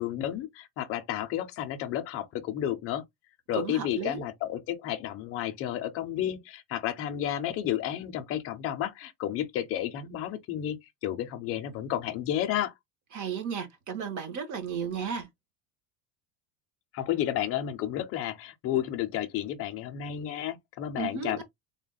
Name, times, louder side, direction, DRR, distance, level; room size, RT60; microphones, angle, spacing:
voice 1, 0.0-3.0 3.5-12.7 16.9-21.4, left 11 dB, 30° left, 0.4 m, -32 dB
voice 2, 3.5-4.2 13.1-15.3 21.0-21.4, right 7 dB, 40° right, 1.1 m, -34 dB
3.5 x 2.1 x 3.8 m
cardioid pair, 170°, 46 cm